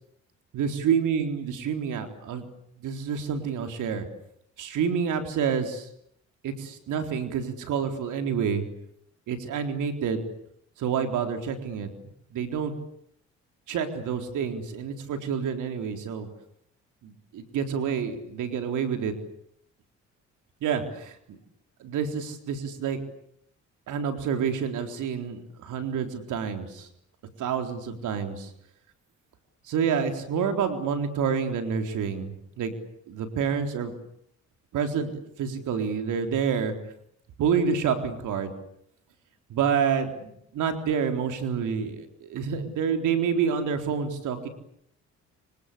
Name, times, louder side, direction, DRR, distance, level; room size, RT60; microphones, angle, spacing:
voice 1, 0.5-2.5 2.8-4.1 4.6-5.9 6.4-8.6 9.3-10.3 10.8-11.9 12.3-12.7 13.7-16.3 17.0-19.1 20.6-21.4 21.8-23.0 23.9-26.9 27.4-28.5 29.6-32.7 33.1-33.9 34.7-35.1 35.4-36.7 37.4-38.5 39.5-44.5, right 7 dB, 80° right, 6 dB, 4.0 m, -28 dB
26.0 x 25.5 x 8.5 m, 0.72 s
cardioid pair, 90°, 30 cm